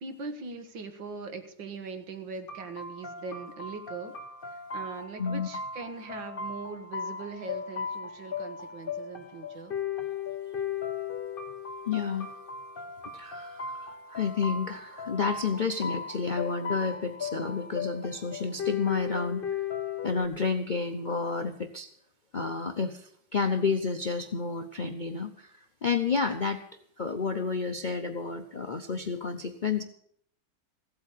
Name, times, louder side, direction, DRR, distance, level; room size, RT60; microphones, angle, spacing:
voice 1, 0.0-4.1 4.5-9.7, right 4 dB, 80° right, 8 dB, 2.2 m, -41 dB
sound 1, 2.5-20.2, left 6 dB, 35° left, 1.3 m, -37 dB
voice 2, 11.9-12.3 13.1-19.4 20.0-21.9 22.3-26.6 27.0-29.8, left 5 dB, 60° left, 6 dB, 0.5 m, -30 dB
16.0 x 8.3 x 8.3 m, 0.67 s
omnidirectional pair, 2.0 m